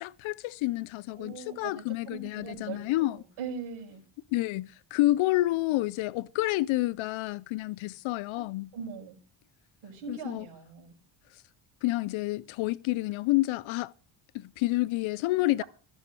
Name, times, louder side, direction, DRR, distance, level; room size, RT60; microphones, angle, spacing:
voice 1, 0.0-3.2 4.3-8.7 10.1-10.4 11.3-11.4 11.8-13.9 14.3-15.6, left 18 dB, 75° left, 0.6 m, -29 dB
voice 2, 1.1-4.0 8.3-8.5 8.7-9.2 9.8-10.9 15.6-15.7, right 6 dB, 80° right, 5.6 m, -41 dB
15.0 x 7.1 x 6.6 m
cardioid pair, 130°, 47 cm